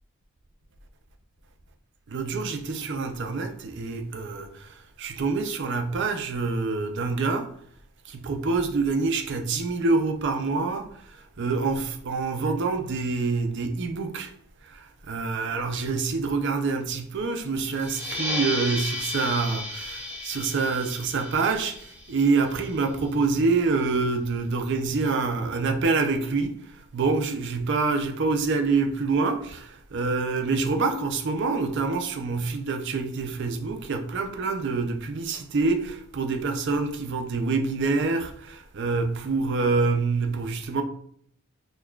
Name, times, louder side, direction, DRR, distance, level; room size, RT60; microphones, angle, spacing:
voice 1, 2.1-7.5 8.0-14.3 14.6-40.8, right 4 dB, 50° right, 0.5 m, -26 dB
sound 1, 17.7-23.0, left 1 dB, 10° right, 0.8 m, -34 dB
6.4 x 2.3 x 2.3 m
head